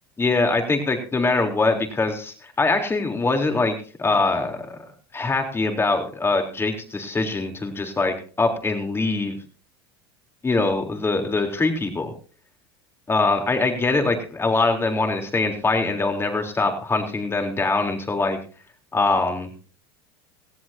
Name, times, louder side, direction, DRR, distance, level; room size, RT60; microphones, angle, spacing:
voice 1, 0.2-4.8 5.1-9.4 10.4-12.1 13.1-18.4 18.9-19.5, left 3 dB, 20° left, 4 dB, 3.8 m, -23 dB
18.0 x 15.0 x 2.9 m, 0.38 s
hypercardioid pair, 95°, 13 cm